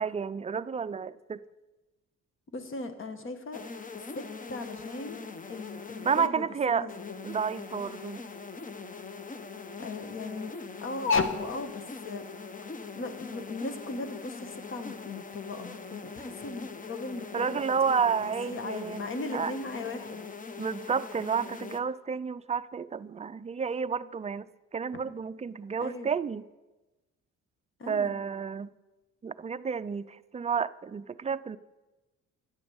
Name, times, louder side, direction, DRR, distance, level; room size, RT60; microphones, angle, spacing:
voice 1, 0.0-1.4 6.0-6.9 7.2-8.2 17.3-19.0 19.3-19.5 20.6-26.4 27.9-28.7 29.2-31.6, right 6 dB, 20° right, 14 dB, 0.4 m, -31 dB
voice 2, 2.5-3.6 4.1-4.2 4.5-5.2 5.5-7.2 9.8-10.5 10.8-12.2 12.9-17.6 18.2-20.3 25.0-25.1 25.8-26.1 27.8-28.2, left 3 dB, 45° left, 8 dB, 1.4 m, -36 dB
sound 1, 3.5-6.3 6.9-21.8, left 4 dB, 25° left, 0.8 m, -42 dB
9.6 x 8.8 x 7.1 m, 1.1 s
cardioid pair, 90°, 30 cm